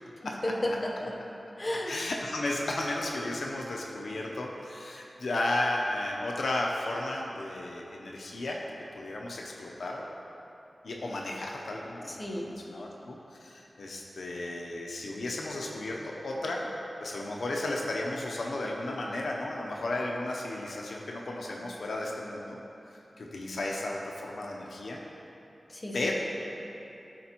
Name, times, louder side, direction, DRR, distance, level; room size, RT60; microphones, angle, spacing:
voice 1, 0.2-1.1 1.6-2.0 12.1-12.5 25.7-26.1, left 1 dB, 25° left, -2 dB, 0.9 m, -33 dB
voice 2, 1.9-8.6 8.9-10.0 10.8-16.7 17.0-22.6 23.2-25.0 25.9-26.1, left 2 dB, 90° left, -2 dB, 0.7 m, -34 dB
11.5 x 4.5 x 2.9 m, 2.9 s
wide cardioid pair, 75°, 0 cm